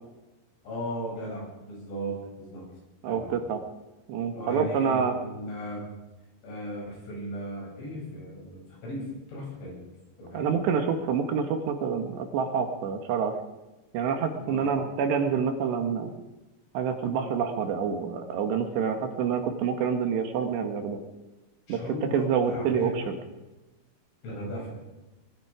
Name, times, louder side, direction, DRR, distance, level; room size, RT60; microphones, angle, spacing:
voice 1, 0.6-2.6 3.1-3.4 4.3-5.9 6.4-9.8 10.2-10.5 14.4-14.7 21.7-22.9 24.2-24.8, equal, 90° left, -3 dB, 10.0 m, -36 dB
voice 2, 3.0-3.6 4.1-5.1 10.3-13.4 13.9-16.1 16.8-21.0 21.7-23.2, right 6 dB, 70° right, 6 dB, 3.6 m, -27 dB
21.5 x 13.0 x 5.0 m, 1.1 s
omnidirectional pair, 5.3 m